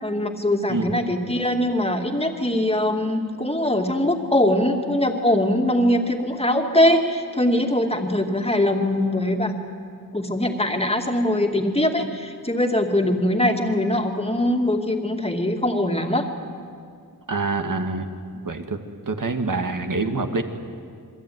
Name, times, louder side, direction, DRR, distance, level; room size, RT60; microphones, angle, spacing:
voice 1, 0.0-9.5 10.1-16.3, left 1 dB, 15° left, 3 dB, 2.5 m, -22 dB
voice 2, 17.3-18.1 18.4-18.8 19.1-20.4, right 3 dB, 60° right, 6 dB, 2.1 m, -25 dB
27.5 x 22.0 x 9.5 m, 2.2 s
wide cardioid pair, 70°, 37 cm